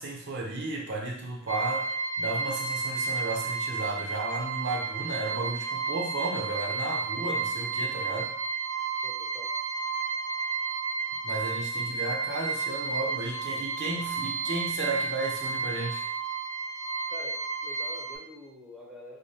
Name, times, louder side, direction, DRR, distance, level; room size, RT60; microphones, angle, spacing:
voice 1, 0.0-8.3 11.2-16.0, right 2 dB, 55° right, -1 dB, 0.7 m, -33 dB
sound 1, 1.5-18.2, right 4 dB, 30° left, 1.0 m, -32 dB
voice 2, 9.0-9.6 17.1-19.2, left 1 dB, ahead, -3 dB, 0.7 m, -46 dB
5.0 x 2.1 x 2.8 m, 0.68 s
head